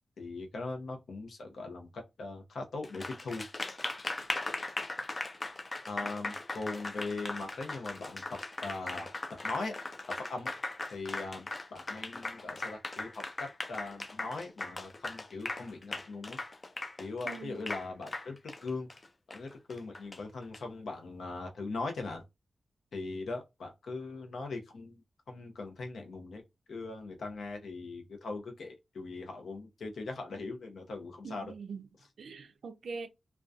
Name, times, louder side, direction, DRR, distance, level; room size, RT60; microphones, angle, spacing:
voice 1, 0.2-3.5 5.9-9.1 9.4-9.8 10.2-10.5 10.9-16.4 17.0-18.9 19.3-22.2 22.9-25.0 25.3-26.4 26.7-31.5, left 3 dB, 85° left, 0.6 m, -40 dB
Applause, 2.8-20.6, left 2 dB, 30° left, 0.3 m, -39 dB
voice 2, 6.0-6.3 17.2-17.6 31.2-31.9 32.2-33.1, right 4 dB, 80° right, 0.3 m, -43 dB
2.5 x 2.2 x 2.3 m
wide cardioid pair, 140°, 0 cm